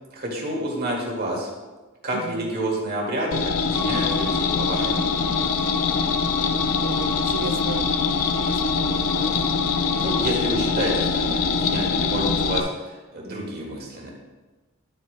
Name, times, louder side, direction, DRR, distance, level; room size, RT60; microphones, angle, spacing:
voice 1, 0.1-1.5 2.0-5.4 10.0-14.1, right 1 dB, 45° right, -2 dB, 2.0 m, -29 dB
voice 2, 2.1-2.6 6.8-7.9 8.2-9.3, right 4 dB, 70° right, 11 dB, 0.5 m, -35 dB
sound 1, 3.3-12.6, left 5 dB, 70° left, 0.6 m, -23 dB
Bowed string instrument, 3.7-10.3, left 2 dB, 5° right, 0.6 m, -36 dB
12.0 x 8.2 x 2.2 m, 1.2 s
head